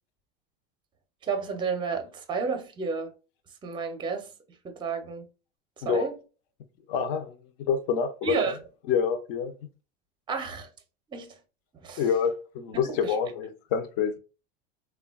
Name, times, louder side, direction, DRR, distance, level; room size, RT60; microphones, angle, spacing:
voice 1, 1.2-3.1 3.6-4.3 4.6-5.3 5.8-6.1 8.2-8.6 10.3-10.7 11.1-11.4 11.8-12.0 12.8-13.1, right 5 dB, 15° right, 0.5 m, -31 dB
voice 2, 6.9-8.5 8.9-9.5 12.0-14.2, left 6 dB, 60° left, 0.6 m, -27 dB
3.2 x 2.2 x 2.3 m
supercardioid pair, 125°, 29 cm